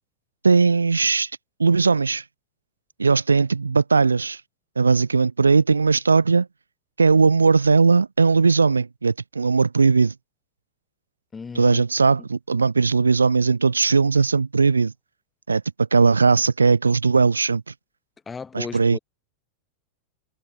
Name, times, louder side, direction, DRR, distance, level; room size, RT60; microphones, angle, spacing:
voice 1, 0.4-1.3 1.6-2.2 3.0-4.4 4.8-6.5 7.0-10.1 11.6-14.9 15.5-17.6 18.5-19.0, right 4 dB, 75° right, 0.5 m, -18 dB
voice 2, 11.3-11.8 18.2-19.0, left 5 dB, 15° left, 3.4 m, -35 dB
figure-of-eight pair, 90°, 0 cm